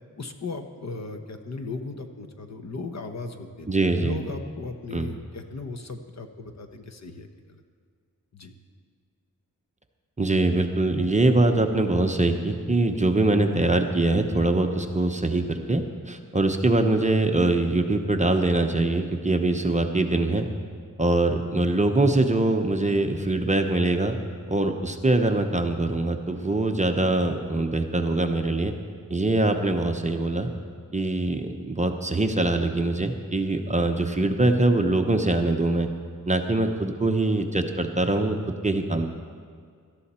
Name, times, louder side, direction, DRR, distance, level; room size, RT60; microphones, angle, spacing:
voice 1, 0.2-3.7 4.0-7.6 8.3-8.5, left 3 dB, 50° left, 6 dB, 1.0 m, -36 dB
voice 2, 3.7-4.2 4.9-5.1 10.2-20.5 21.0-24.2 24.5-28.7 29.1-30.5 30.9-35.9 36.3-38.4 38.6-39.1, right 2 dB, 20° right, 5 dB, 0.8 m, -23 dB
18.0 x 13.0 x 4.3 m, 2.1 s
wide cardioid pair, 155°, 34 cm